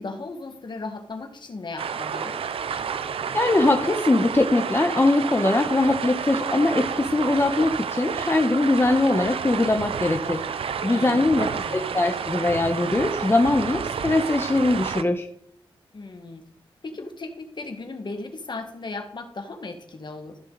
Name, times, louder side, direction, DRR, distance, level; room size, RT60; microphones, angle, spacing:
voice 1, 0.0-2.4 10.9-12.0 15.9-16.4 16.8-20.4, left 3 dB, 55° left, 6 dB, 1.7 m, -36 dB
sound 1, 1.8-15.0, right 7 dB, 85° right, 0.6 m, -30 dB
voice 2, 3.3-10.4 10.8-11.5 11.7-15.3, left 2 dB, 25° left, 5 dB, 1.1 m, -21 dB
14.0 x 6.7 x 4.1 m, 0.69 s
cardioid pair, 60°, 9 cm